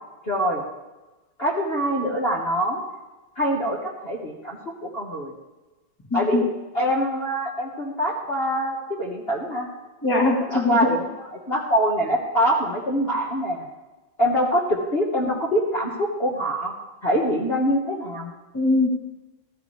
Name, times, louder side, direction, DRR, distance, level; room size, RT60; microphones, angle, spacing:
voice 1, 0.2-0.6 1.4-2.8 3.3-5.3 6.1-6.5 6.7-9.7 10.5-11.0 11.5-13.7 14.2-16.7 17.0-18.3, equal, 35° left, -5 dB, 1.5 m, -24 dB
voice 2, 6.1-6.4 10.0-10.9 18.5-18.9, left 2 dB, 10° left, 1 dB, 1.6 m, -21 dB
14.5 x 14.0 x 3.3 m, 1.1 s
omnidirectional pair, 2.1 m